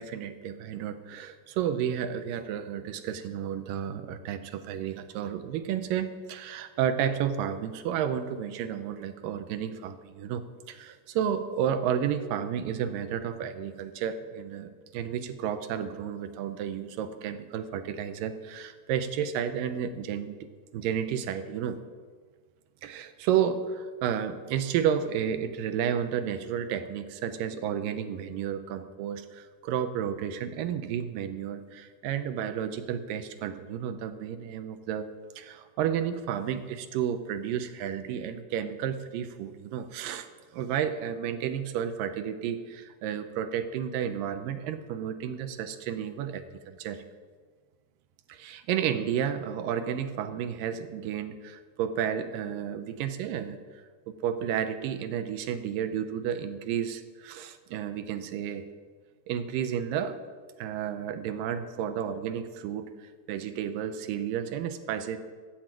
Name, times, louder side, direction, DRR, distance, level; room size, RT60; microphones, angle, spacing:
voice 1, 0.0-20.4 20.7-21.8 22.8-35.1 35.4-40.3 40.5-47.0 48.3-58.7 59.3-60.2 60.6-65.2, right 9 dB, 80° right, 10 dB, 2.3 m, -32 dB
10.5 x 7.9 x 8.9 m, 1.6 s
omnidirectional pair, 4.1 m